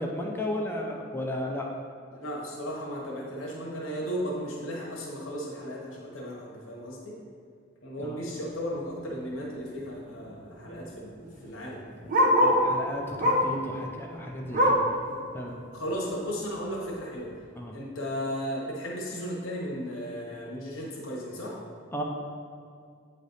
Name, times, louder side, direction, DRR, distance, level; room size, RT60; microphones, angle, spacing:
voice 1, 0.0-1.7 8.0-8.2 12.4-14.9 15.3-15.6 17.6-17.7 21.9-22.0, left 1 dB, 10° left, 0 dB, 0.5 m, -34 dB
voice 2, 2.1-7.2 7.8-11.2 11.4-11.8 15.0-15.2 15.7-17.4 17.7-21.6, equal, 80° left, -3 dB, 1.1 m, -35 dB
Bark, 9.0-9.2 9.6-9.7 9.9-12.7 13.2-13.6 14.0-15.0 15.4-15.5 15.9-16.0 16.7-16.8, equal, 40° right, 0.8 m, -25 dB
8.3 x 3.3 x 4.0 m, 2.3 s
head